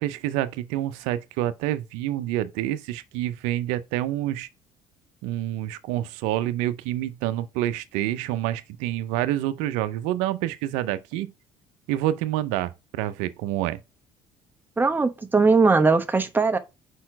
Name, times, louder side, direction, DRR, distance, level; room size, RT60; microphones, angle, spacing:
voice 1, 0.0-4.5 5.2-11.3 11.9-13.8, right 13 dB, 80° right, 0.5 m, -27 dB
voice 2, 14.8-16.6, right 4 dB, 15° right, 1.0 m, -20 dB
4.8 x 4.3 x 5.6 m
hypercardioid pair, 70°, 12 cm